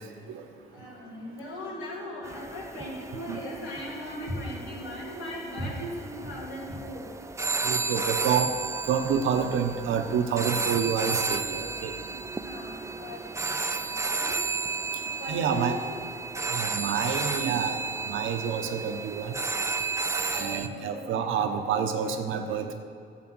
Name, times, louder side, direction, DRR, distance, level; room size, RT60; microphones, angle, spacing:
voice 1, 0.7-7.1 7.8-8.1 12.4-13.2 14.2-14.4 15.2-15.8 20.3-21.2, left 1 dB, 85° left, -4 dB, 3.3 m, -38 dB
sound 1, 2.2-20.7, right 4 dB, 15° right, 0.5 m, -33 dB
voice 2, 7.6-8.5 8.9-11.9 15.3-15.8 16.5-17.8 18.1-19.3 20.3-22.7, right 7 dB, 85° right, 6 dB, 1.0 m, -28 dB
11.5 x 7.6 x 6.2 m, 2.4 s
cardioid pair, 90°, 20 cm